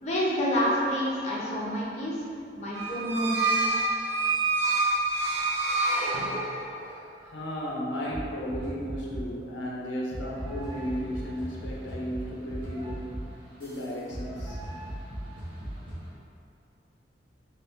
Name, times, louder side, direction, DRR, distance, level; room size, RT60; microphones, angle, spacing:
voice 1, 0.0-2.2 2.5-3.5, equal, 40° left, -6 dB, 0.7 m, -28 dB
sound 1, 2.7-6.9, right 3 dB, 90° right, 0.8 m, -27 dB
voice 2, 6.7-13.2 13.6-14.6, equal, 85° left, -3 dB, 0.7 m, -35 dB
sound 2, 8.1-9.4 10.1-16.1, equal, 30° right, 1.0 m, -38 dB
3.1 x 2.9 x 3.4 m, 2.4 s
head